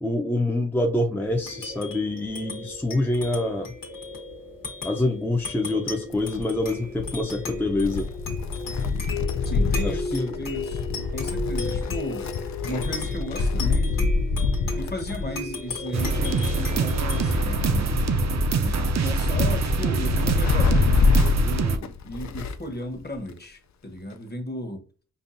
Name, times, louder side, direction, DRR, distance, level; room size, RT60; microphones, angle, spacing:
voice 1, 0.0-3.7 4.8-8.1 9.8-10.3, left 2 dB, 5° left, 0.5 m, -26 dB
sound 1, 1.2-20.1, left 3 dB, 90° left, 1.3 m, -36 dB
Wind, 6.1-22.7 23.0-23.1 24.1-24.2, left 4 dB, 60° left, 0.4 m, -26 dB
voice 2, 9.4-12.3 12.7-14.2 14.8-18.0 18.6-21.0 21.4-24.8, equal, 30° left, 1.0 m, -35 dB
sound 2, 15.9-21.8, right 3 dB, 55° right, 0.5 m, -24 dB
5.3 x 2.3 x 2.6 m
cardioid pair, 70°, 32 cm